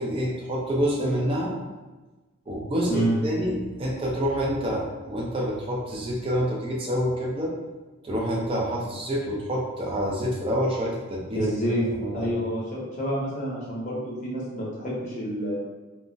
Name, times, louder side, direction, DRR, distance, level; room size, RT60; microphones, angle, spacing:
voice 1, 0.0-1.5 2.5-7.5 8.0-12.3, equal, 25° right, -3 dB, 0.4 m, -27 dB
voice 2, 11.3-11.8 12.1-15.6, equal, 35° left, -5 dB, 0.8 m, -28 dB
2.4 x 2.0 x 3.8 m, 1.2 s
head